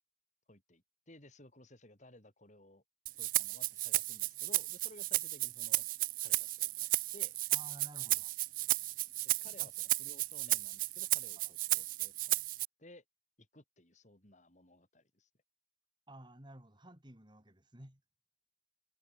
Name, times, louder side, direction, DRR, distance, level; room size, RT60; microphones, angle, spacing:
voice 1, 0.5-2.8 3.2-5.9 6.2-7.4 9.2-12.4 12.8-13.0 13.4-15.3, left 1 dB, 45° left, 6.4 m, -58 dB
Rattle (instrument), 3.1-12.7, right 19 dB, 50° right, 0.3 m, -34 dB
voice 2, 7.5-8.3 9.6-9.7 11.4-11.5 16.1-18.0, right 1 dB, 25° right, 3.7 m, -54 dB
head